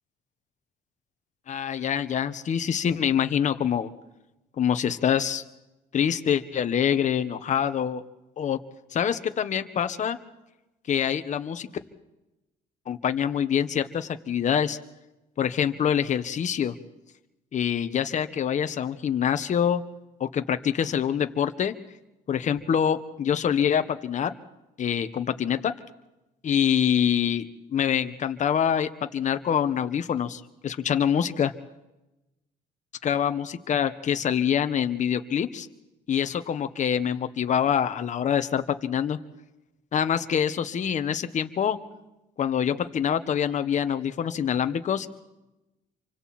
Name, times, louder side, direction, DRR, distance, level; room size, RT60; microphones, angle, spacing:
voice 1, 1.5-3.9 4.6-5.4 5.9-8.0 8.4-8.6 8.9-10.2 10.9-11.7 12.9-14.8 15.4-16.7 17.5-19.8 20.2-21.7 22.3-24.3 24.8-25.7 26.4-31.5 33.0-35.7 36.1-39.2 39.9-41.8 42.4-45.1, left 8 dB, 45° left, 9 dB, 1.5 m, -25 dB
28.0 x 25.0 x 4.5 m, 0.97 s
cardioid pair, 110°, 17 cm